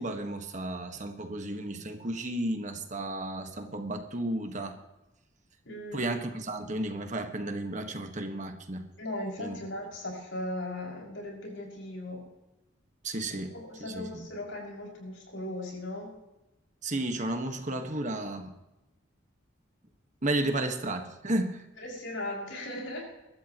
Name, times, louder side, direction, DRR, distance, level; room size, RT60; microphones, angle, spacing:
voice 1, 0.0-4.7 5.9-8.9 9.4-9.6 13.0-13.5 13.8-14.2 16.8-18.5 20.2-21.6, right 1 dB, 40° right, 5 dB, 1.5 m, -33 dB
voice 2, 5.6-6.1 9.0-12.2 13.5-16.1 21.8-23.0, left 1 dB, 75° left, -2 dB, 6.3 m, -38 dB
23.5 x 13.0 x 3.0 m, 0.98 s
head